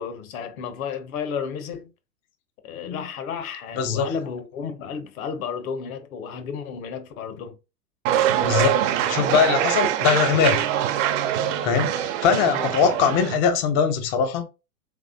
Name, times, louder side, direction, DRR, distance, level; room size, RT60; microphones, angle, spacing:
voice 1, 0.0-1.9 2.6-7.6 12.5-12.7, left 6 dB, 60° left, 1.0 m, -32 dB
voice 2, 3.8-4.1 8.4-10.7 11.6-14.5, left 6 dB, 25° left, 0.4 m, -22 dB
sound 1, 8.0-13.4, right 11 dB, 55° right, 0.6 m, -23 dB
3.4 x 3.2 x 2.6 m
hypercardioid pair, 100°, 46 cm